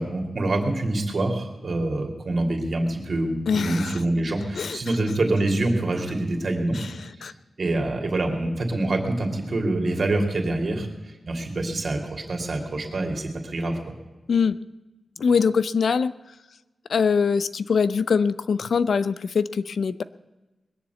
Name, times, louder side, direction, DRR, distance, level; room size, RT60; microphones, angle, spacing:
voice 1, 0.0-6.8 7.6-10.9 11.3-13.8, right 2 dB, 55° right, 3 dB, 2.9 m, -25 dB
voice 2, 3.5-4.0 4.6-4.8 6.8-6.9 7.2-7.3 14.3-14.6 15.2-16.1 16.9-20.0, left 5 dB, 75° left, 15 dB, 0.5 m, -23 dB
21.0 x 7.3 x 8.4 m, 1.1 s
wide cardioid pair, 105°, 0 cm